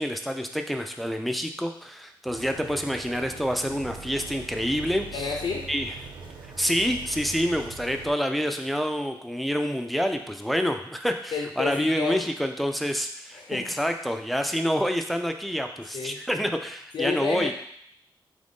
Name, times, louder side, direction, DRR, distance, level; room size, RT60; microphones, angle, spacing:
voice 1, 0.0-5.3 5.7-5.9 6.6-17.5, equal, ahead, 5 dB, 0.4 m, -27 dB
sound 1, 2.3-8.1, right 4 dB, 80° right, 0.5 m, -42 dB
voice 2, 5.1-5.7 11.3-12.2 13.3-13.7 15.9-16.2 16.9-17.5, left 5 dB, 80° left, 0 dB, 0.4 m, -30 dB
3.6 x 2.6 x 3.5 m, 0.66 s
cardioid pair, 65°, 8 cm